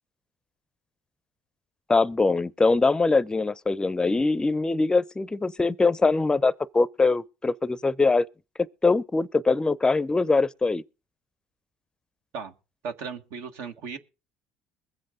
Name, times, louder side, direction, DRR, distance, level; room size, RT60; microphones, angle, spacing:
voice 1, 1.9-8.3 8.8-10.8, left 3 dB, 15° left, 0.5 m, -22 dB
voice 2, 12.8-14.0, right 5 dB, 75° right, 1.5 m, -36 dB
21.5 x 7.7 x 3.7 m
supercardioid pair, 85°, 5 cm